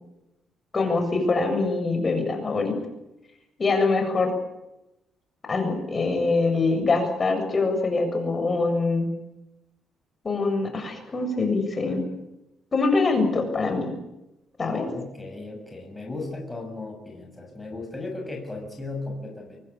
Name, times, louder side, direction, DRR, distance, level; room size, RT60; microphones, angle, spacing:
voice 1, 0.7-2.8 3.6-4.3 5.5-9.1 10.2-12.0 12.7-13.9 14.6-14.9, left 3 dB, 35° left, 5 dB, 7.5 m, -24 dB
voice 2, 14.9-19.6, left 2 dB, 10° left, 1 dB, 7.2 m, -36 dB
23.5 x 23.5 x 8.7 m, 0.93 s
cardioid pair, 90°, 0 cm